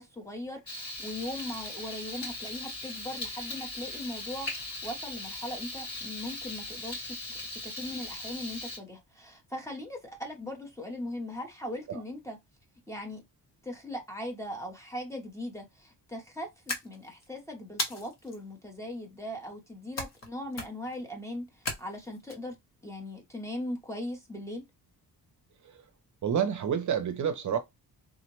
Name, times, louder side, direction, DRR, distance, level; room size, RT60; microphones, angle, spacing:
voice 1, 0.0-7.2 7.6-12.4 12.9-13.2 13.6-22.6 22.8-24.6, left 1 dB, 10° left, 0.6 m, -39 dB
Frying (food), 0.7-8.8, left 2 dB, 60° left, 2.3 m, -39 dB
sound 1, 16.7-17.3 17.8-18.4 20.0-20.3 20.5-21.0 21.7-22.3, left 2 dB, 45° left, 0.8 m, -35 dB
voice 2, 26.2-27.6, right 8 dB, 50° right, 0.5 m, -29 dB
3.6 x 2.1 x 2.9 m
wide cardioid pair, 160°, 38 cm